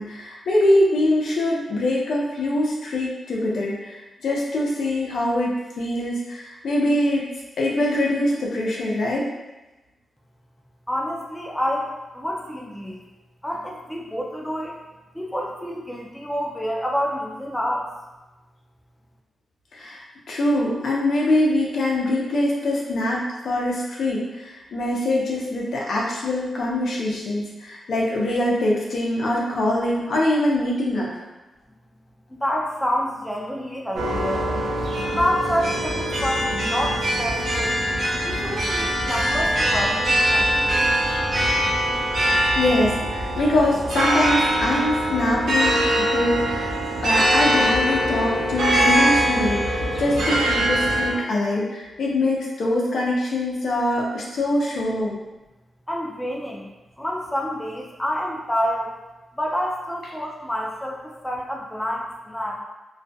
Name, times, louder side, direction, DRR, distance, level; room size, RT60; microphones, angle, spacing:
voice 1, 0.0-7.2 7.6-9.3 19.7-31.1 42.3-46.7 47.0-55.2, left 1 dB, 70° left, -3 dB, 0.6 m, -23 dB
voice 2, 10.9-13.0 13.4-14.8 15.1-17.9 32.3-34.5 35.1-37.8 38.2-40.8 55.9-56.7 57.0-58.9 59.3-62.6, equal, 5° left, -1 dB, 0.4 m, -28 dB
sound 1, 34.0-51.1, equal, 65° right, 0.5 m, -22 dB
2.3 x 2.2 x 2.6 m, 1.1 s
wide cardioid pair, 125°, 0 cm